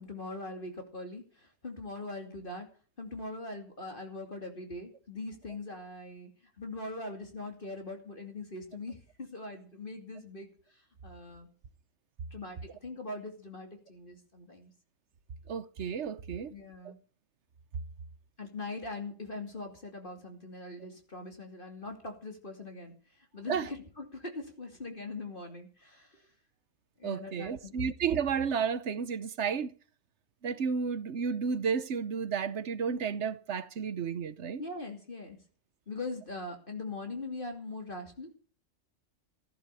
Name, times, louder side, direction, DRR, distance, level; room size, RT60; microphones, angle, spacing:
voice 1, 0.0-2.7 3.0-6.3 6.6-11.5 12.3-14.7 16.5-17.0 18.4-26.3 27.0-27.7 34.6-35.4 35.9-38.4, left 2 dB, 40° left, 2.8 m, -42 dB
voice 2, 15.5-16.5 16.8-16.9 23.5-23.7 27.0-29.7 30.4-34.6, right 6 dB, 60° right, 1.1 m, -32 dB
15.5 x 11.0 x 6.8 m
omnidirectional pair, 1.4 m